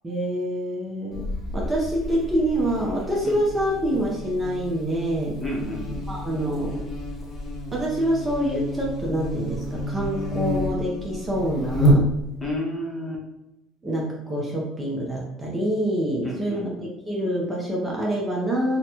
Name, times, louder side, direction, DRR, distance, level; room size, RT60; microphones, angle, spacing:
voice 1, 0.0-5.4 6.1-6.9 7.7-12.1 13.8-16.7 17.0-18.8, equal, 15° right, -3 dB, 0.8 m, -26 dB
Buzz, 1.1-12.5, equal, 40° left, 1.0 m, -29 dB
voice 2, 5.4-6.1 12.4-13.2 16.2-16.9, left 1 dB, 15° left, -2 dB, 0.9 m, -31 dB
3.8 x 2.3 x 2.9 m, 0.91 s
cardioid pair, 120°, 0 cm